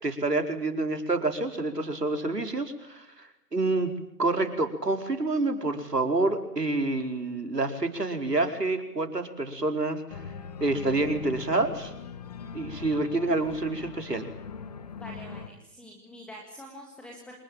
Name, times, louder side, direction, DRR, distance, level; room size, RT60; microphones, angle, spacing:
voice 1, 0.0-3.9 4.2-10.3 10.6-11.9 12.5-14.3, right 2 dB, 80° right, 6 dB, 5.0 m, -28 dB
Organ, 10.1-15.5, left 5 dB, 25° left, 1.3 m, -41 dB
voice 2, 14.9-17.4, equal, ahead, 0 dB, 1.8 m, -45 dB
27.0 x 20.5 x 9.1 m, 0.80 s
figure-of-eight pair, 150°, 48 cm